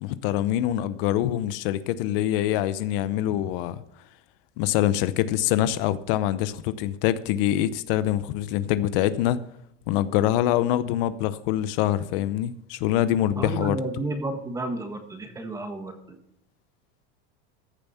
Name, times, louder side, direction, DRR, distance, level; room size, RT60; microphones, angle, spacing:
voice 1, 0.0-3.8 4.6-9.4 9.9-13.8, left 12 dB, 65° left, 14 dB, 0.8 m, -24 dB
voice 2, 13.4-16.2, right 2 dB, 10° right, 6 dB, 1.4 m, -31 dB
14.5 x 7.1 x 5.7 m, 0.77 s
cardioid pair, 160°, 30 cm